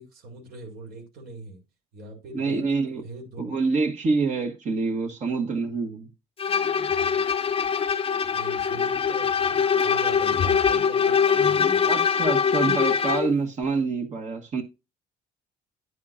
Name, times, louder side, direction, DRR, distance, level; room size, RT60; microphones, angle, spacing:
voice 1, 0.0-1.6 1.9-2.6 2.9-3.6 8.3-11.9, right 2 dB, 70° right, 4.7 m, -42 dB
voice 2, 2.3-3.0 3.4-6.1 11.9-14.6, right 4 dB, 45° right, 1.5 m, -26 dB
Bowed string instrument, 6.4-13.3, left 6 dB, 35° left, 0.8 m, -23 dB
10.0 x 9.4 x 2.6 m
cardioid pair, 110°, 17 cm